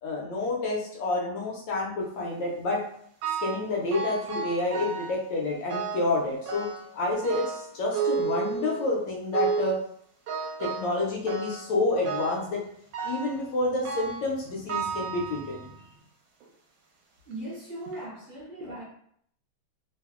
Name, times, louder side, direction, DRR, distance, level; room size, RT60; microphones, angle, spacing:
voice 1, 0.0-2.8 3.4-6.7 6.9-9.8 10.6-12.6 13.0-15.7, left 2 dB, 75° left, -2 dB, 1.2 m, -29 dB
sound 1, 3.2-3.7 3.9-5.2 5.7-6.1 6.5-6.9 7.2-8.9 9.3-9.8 10.3-11.0 11.3-11.7 12.0-12.5 12.9-13.4 13.8-14.3 14.7-15.8 16.4-16.5 17.3-17.4 17.9-18.0, right 5 dB, 80° right, 1.4 m, -32 dB
voice 2, 17.2-18.8, right 1 dB, 60° right, -6 dB, 1.4 m, -38 dB
3.3 x 2.0 x 2.3 m, 0.66 s
omnidirectional pair, 2.3 m